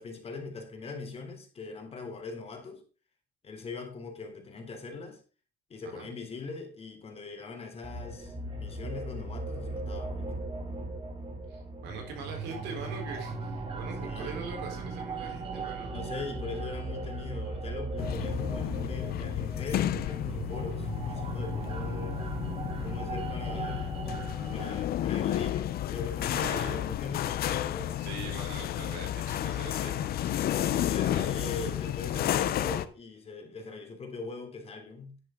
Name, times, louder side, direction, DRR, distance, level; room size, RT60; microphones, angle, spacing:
voice 1, 0.0-2.8 3.4-5.2 5.7-8.4 8.6-10.3 14.0-14.4 15.9-22.2 22.8-24.2 24.5-28.1 30.7-35.2, left 4 dB, 35° left, 3.5 m, -41 dB
sound 1, 7.8-24.8, right 3 dB, 35° right, 2.8 m, -37 dB
voice 2, 11.5-16.0 26.3-26.8 28.0-30.4 31.0-31.9, right 4 dB, 85° right, 4.2 m, -42 dB
sound 2, 18.0-32.9, left 12 dB, 65° left, 0.8 m, -32 dB
10.5 x 9.9 x 3.8 m
cardioid pair, 110°, 17 cm